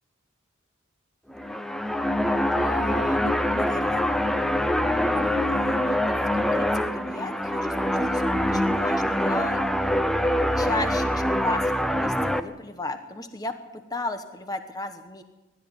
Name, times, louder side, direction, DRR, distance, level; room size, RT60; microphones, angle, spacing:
sound 1, 1.3-12.4, left 1 dB, ahead, 0.7 m, -24 dB
voice 1, 2.6-4.3 4.8-9.6 10.2-10.3 10.6-15.2, left 1 dB, 20° left, 8 dB, 1.1 m, -34 dB
21.5 x 13.0 x 9.8 m, 1.1 s
head